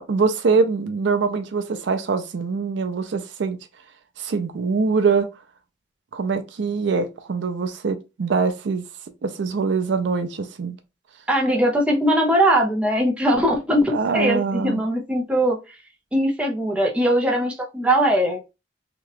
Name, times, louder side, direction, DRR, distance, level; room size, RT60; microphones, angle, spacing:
voice 1, 0.0-3.6 4.2-5.3 6.1-8.8 9.2-10.8 13.9-14.8, right 4 dB, 65° right, 0.4 m, -23 dB
voice 2, 11.3-15.8 16.1-18.4, equal, 5° right, 0.6 m, -20 dB
2.9 x 2.3 x 3.1 m
head